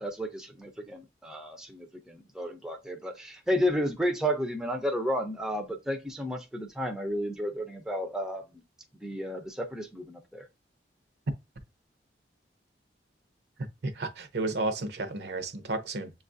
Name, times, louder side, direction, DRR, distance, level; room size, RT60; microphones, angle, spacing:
voice 1, 0.0-8.6 9.0-10.4, equal, 5° right, 0.5 m, -32 dB
voice 2, 13.8-16.1, right 2 dB, 65° right, 0.7 m, -32 dB
7.1 x 2.4 x 2.5 m
head